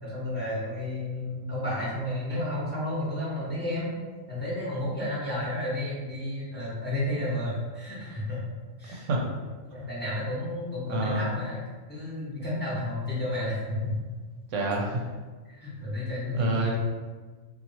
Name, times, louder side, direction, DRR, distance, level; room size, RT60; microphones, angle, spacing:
voice 1, 0.0-3.9 4.3-8.4 8.8-9.1 9.7-11.6 11.9-13.9 15.5-16.8, left 1 dB, 10° left, -8 dB, 1.0 m, -32 dB
voice 2, 10.9-11.3 14.5-15.0 16.3-16.8, right 2 dB, 70° right, -1 dB, 0.9 m, -27 dB
2.9 x 2.6 x 4.0 m, 1.4 s
omnidirectional pair, 1.4 m